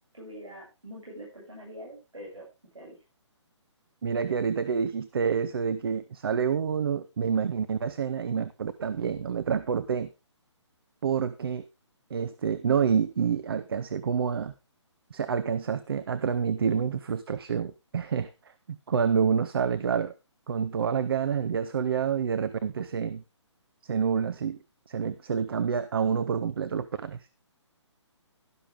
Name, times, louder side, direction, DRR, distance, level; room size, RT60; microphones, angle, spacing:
voice 1, 0.1-2.4 2.7-3.0, equal, 80° right, -6 dB, 8.0 m, -44 dB
voice 2, 4.0-10.1 11.0-11.7 12.1-14.5 15.1-20.1 20.5-23.2 23.8-24.6 24.9-27.3, right 7 dB, 50° right, 12 dB, 0.8 m, -28 dB
12.5 x 11.5 x 3.6 m, 0.26 s
figure-of-eight pair, 140°, 16 cm